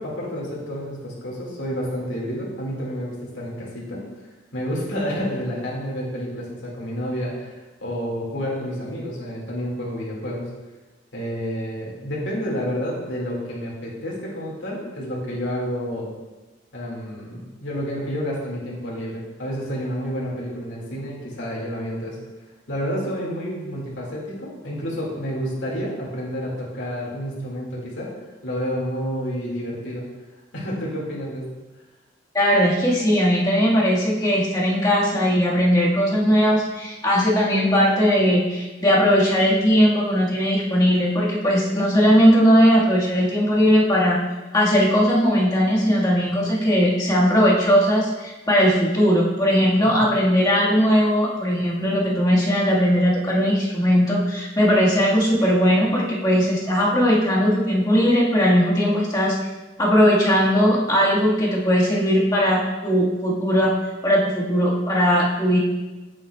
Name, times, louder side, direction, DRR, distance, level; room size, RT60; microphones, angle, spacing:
voice 1, 0.0-4.0 4.5-10.5 11.1-16.1 16.7-22.2 22.7-28.1 28.4-30.0 30.5-31.5 49.8-50.2, equal, 85° left, -4 dB, 2.0 m, -29 dB
voice 2, 32.3-44.2 44.5-59.3 59.8-63.7 64.0-65.6, equal, 20° left, -5 dB, 1.5 m, -19 dB
8.1 x 7.5 x 2.3 m, 1.1 s
head